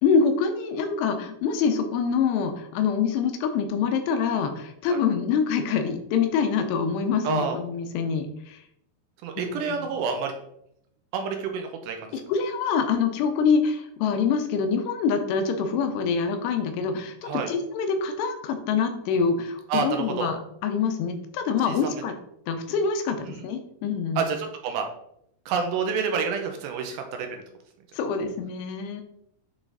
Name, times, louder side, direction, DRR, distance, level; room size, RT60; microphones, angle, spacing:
voice 1, 0.0-8.6 9.4-9.5 12.3-22.1 22.5-24.2 27.9-29.0, left 6 dB, 90° left, 7 dB, 2.8 m, -25 dB
voice 2, 7.2-7.6 9.2-10.3 11.1-12.2 17.2-17.5 19.7-20.3 21.6-21.9 23.2-23.4 24.2-24.9 25.5-27.4, right 5 dB, 80° right, 4 dB, 2.2 m, -28 dB
8.4 x 3.3 x 3.9 m, 0.75 s
omnidirectional pair, 4.9 m